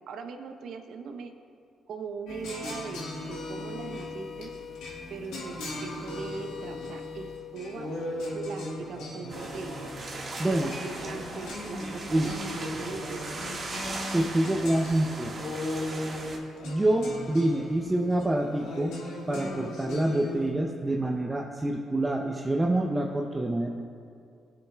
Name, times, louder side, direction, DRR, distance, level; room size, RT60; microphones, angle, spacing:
voice 1, 0.1-1.3 1.9-4.5 5.1-7.9 8.3-9.9 10.4-13.5, right 4 dB, 70° right, 6 dB, 0.8 m, -40 dB
sound 1, 2.3-20.5, left 2 dB, 90° left, 1.5 m, -38 dB
sound 2, 9.3-16.4, right 2 dB, 40° right, 1.6 m, -38 dB
voice 2, 10.4-10.7 11.8-12.3 14.1-15.4 16.6-19.0 19.3-23.7, right 1 dB, 15° right, 1 dB, 0.6 m, -27 dB
17.0 x 7.2 x 2.3 m, 2.4 s
cardioid pair, 90°, 0 cm